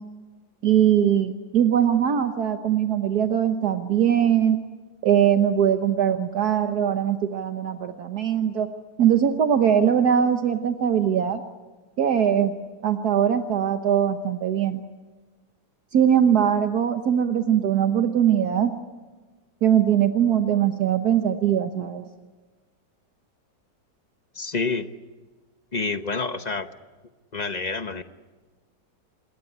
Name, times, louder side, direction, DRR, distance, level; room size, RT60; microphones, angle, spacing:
voice 1, 0.6-4.6 5.0-8.7 9.0-11.4 12.0-12.5 12.8-14.8 15.9-18.7 19.6-22.0, right 9 dB, 65° right, 6 dB, 1.6 m, -21 dB
voice 2, 24.3-24.9 25.7-26.7 27.3-28.0, left 4 dB, 35° left, 10 dB, 0.8 m, -28 dB
27.0 x 21.0 x 9.9 m, 1.3 s
omnidirectional pair, 1.8 m